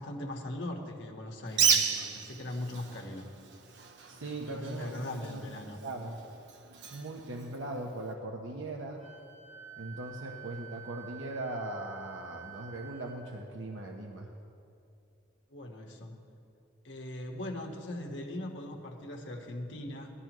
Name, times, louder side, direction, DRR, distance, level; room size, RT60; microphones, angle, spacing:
voice 1, 0.0-3.3 4.1-5.8 15.5-16.2 16.8-20.1, left 1 dB, 70° left, 1 dB, 1.4 m, -40 dB
Bird, 1.5-8.1, right 6 dB, 60° right, 0.8 m, -34 dB
voice 2, 4.1-5.4 5.8-6.2 6.9-9.0 9.8-14.3, right 2 dB, 90° right, 2 dB, 0.9 m, -39 dB
Wind instrument woodwind instrument, 9.0-13.2, right 10 dB, 30° right, 2.9 m, -49 dB
18.5 x 12.5 x 3.0 m, 2.6 s
head